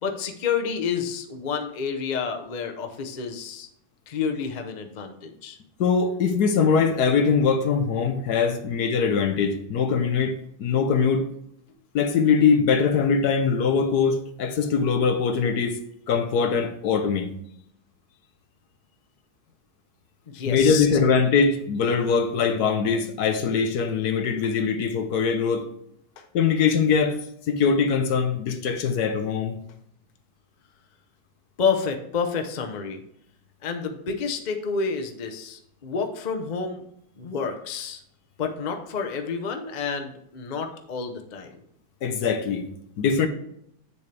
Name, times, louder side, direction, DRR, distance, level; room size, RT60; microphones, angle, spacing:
voice 1, 0.0-3.7 4.1-5.6 20.3-20.9 26.2-26.3 31.6-33.0 33.6-36.8 37.2-38.0 38.4-41.6, left 5 dB, 90° left, 0.4 m, -29 dB
voice 2, 5.8-11.2 11.9-15.8 16.1-17.3 20.5-25.7 26.3-27.2 27.5-29.6 42.0-42.7 43.0-43.3, left 5 dB, 60° left, 1.2 m, -22 dB
8.3 x 6.9 x 3.4 m
omnidirectional pair, 2.2 m